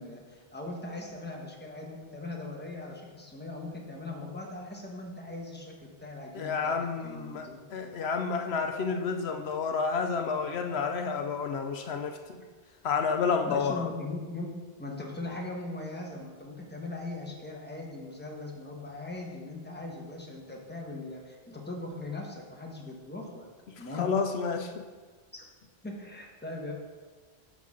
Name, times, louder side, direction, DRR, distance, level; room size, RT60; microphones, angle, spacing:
voice 1, 0.0-6.8 7.0-7.6 13.5-14.5 14.8-23.5 23.8-24.1 25.3-25.4 25.8-26.7, left 2 dB, 10° left, -1 dB, 1.1 m, -40 dB
voice 2, 6.3-12.4 12.8-13.9 23.9-24.7, left 5 dB, 75° left, 5 dB, 0.9 m, -30 dB
9.4 x 6.1 x 3.7 m, 1.4 s
omnidirectional pair, 1.1 m